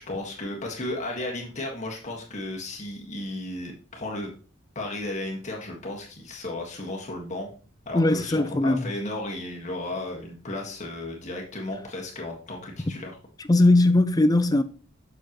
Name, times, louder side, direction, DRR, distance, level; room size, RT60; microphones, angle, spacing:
voice 1, 0.0-4.3 4.8-7.5 7.9-13.2, left 2 dB, 35° left, 1.6 m, -34 dB
voice 2, 7.9-8.9 13.5-14.6, left 2 dB, 20° left, 0.5 m, -19 dB
7.3 x 6.7 x 3.0 m
head